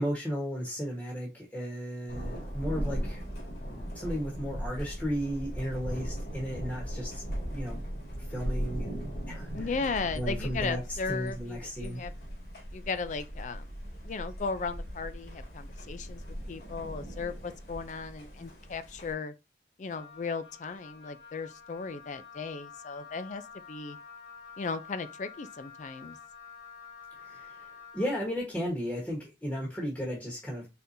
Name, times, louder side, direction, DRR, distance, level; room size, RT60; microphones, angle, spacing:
voice 1, 0.0-3.2 3.7-7.2 7.5-7.8 8.2-9.7 10.1-12.0 27.2-27.7 27.9-30.7, equal, 10° left, 1.2 m, -35 dB
Thunder, 2.1-19.1, equal, 65° left, 1.9 m, -38 dB
voice 2, 9.5-12.1 12.7-13.7 14.0-19.3 19.8-23.4 23.7-24.0 24.6-26.2, left 4 dB, 45° left, 0.4 m, -36 dB
Wind instrument woodwind instrument, 19.9-28.2, left 6 dB, 80° left, 1.9 m, -49 dB
4.2 x 3.7 x 2.6 m
head